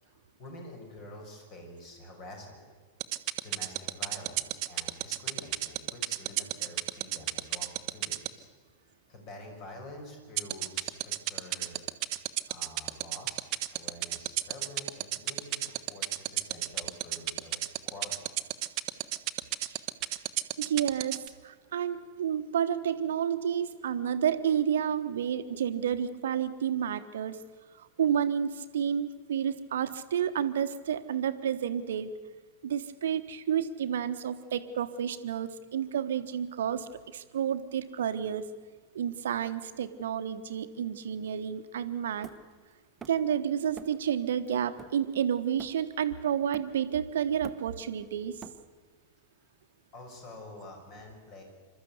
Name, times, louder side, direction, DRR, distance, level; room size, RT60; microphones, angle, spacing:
voice 1, 0.0-2.7 3.4-8.5 8.8-11.8 12.5-13.5 13.7-18.3 49.4-49.5 49.9-51.4, left 1 dB, 40° left, 2 dB, 5.9 m, -47 dB
sound 1, 3.0-8.3 10.4-21.3, right 18 dB, 40° right, 0.8 m, -30 dB
voice 2, 20.6-27.4 27.8-32.1 32.6-38.4 38.9-42.3 43.1-48.4, right 9 dB, 60° right, 11 dB, 1.1 m, -30 dB
Hammer, 42.2-43.4 43.8-44.1 44.5-46.1 46.5-47.0 47.3-48.9, right 5 dB, 15° right, 1.2 m, -48 dB
27.5 x 13.0 x 8.2 m, 1.4 s
figure-of-eight pair, 90°, 0 cm